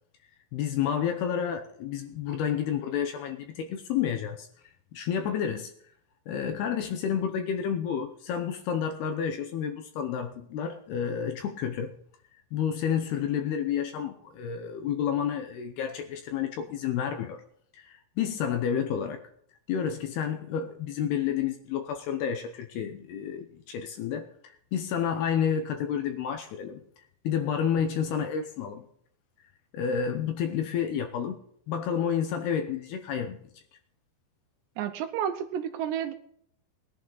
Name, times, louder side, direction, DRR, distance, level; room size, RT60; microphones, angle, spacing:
voice 1, 0.5-4.5 4.9-5.7 6.3-11.9 12.5-17.4 17.7-19.2 19.7-26.8 27.2-28.9 29.7-31.4 31.7-33.4, left 8 dB, 75° left, 2.5 m, -30 dB
voice 2, 34.8-36.1, right 9 dB, 80° right, 2.8 m, -31 dB
19.5 x 11.5 x 4.0 m
omnidirectional pair, 5.4 m